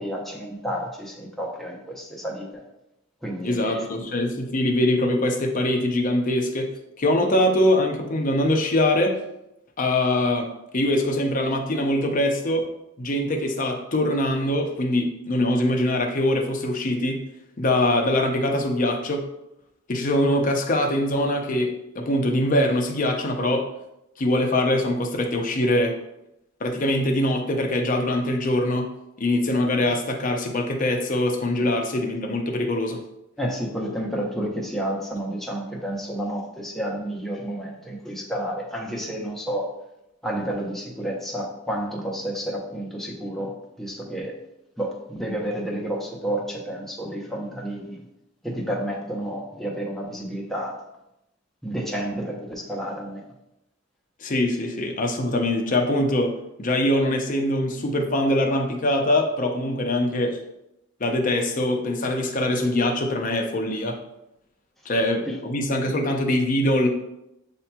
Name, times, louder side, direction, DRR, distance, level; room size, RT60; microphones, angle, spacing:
voice 1, 0.0-2.6 3.2-3.9 33.4-39.7 40.2-44.4 44.8-48.0 48.4-50.8 51.6-53.3 65.3-65.4, right 1 dB, ahead, -2 dB, 0.7 m, -30 dB
voice 2, 3.4-9.2 9.8-10.5 10.7-12.7 13.0-17.2 17.6-19.3 19.9-23.7 24.2-26.0 26.6-28.9 29.2-33.0 54.2-60.4 61.0-64.0 64.9-66.9, left 1 dB, 40° left, 3 dB, 0.6 m, -23 dB
8.1 x 2.8 x 2.2 m, 0.86 s
head